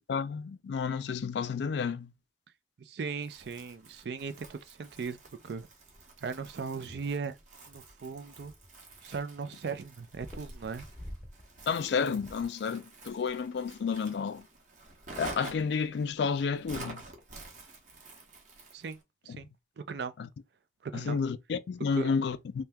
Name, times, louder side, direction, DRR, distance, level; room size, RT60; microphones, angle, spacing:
voice 1, 0.1-2.1 11.7-14.5 15.2-17.0 19.3-19.4 20.2-20.3 20.9-22.7, left 5 dB, 70° left, 0.3 m, -31 dB
voice 2, 2.8-5.2 5.4-5.7 6.2-7.4 7.7-8.5 9.0-10.8 18.7-19.0 19.2-19.5 19.8-20.1 20.8-21.2 22.0-22.1, right 5 dB, 70° right, 0.4 m, -38 dB
Crumpling crinkling, 3.2-19.0, right 2 dB, 40° right, 0.8 m, -49 dB
sound 1, 5.8-7.1 7.4-9.7 10.1-12.4, equal, 5° left, 0.7 m, -50 dB
2.8 x 2.2 x 3.4 m
head